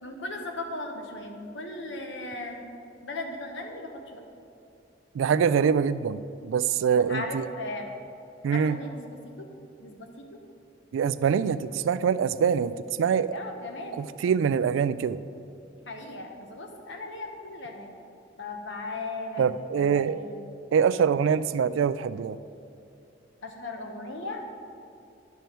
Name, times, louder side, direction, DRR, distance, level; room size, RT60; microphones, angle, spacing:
voice 1, 0.0-2.6 3.0-4.2 6.9-7.9 8.5-9.5 9.8-10.4 13.3-14.0 15.9-17.9 18.4-19.5 19.7-20.4 21.3-21.4 23.4-24.4, left 2 dB, 70° left, 3 dB, 1.0 m, -37 dB
voice 2, 5.1-7.5 8.4-8.8 10.9-13.3 13.9-15.2 19.4-20.2 20.7-22.4, right 7 dB, 85° right, 15 dB, 0.3 m, -24 dB
10.5 x 6.9 x 4.5 m, 2.7 s
head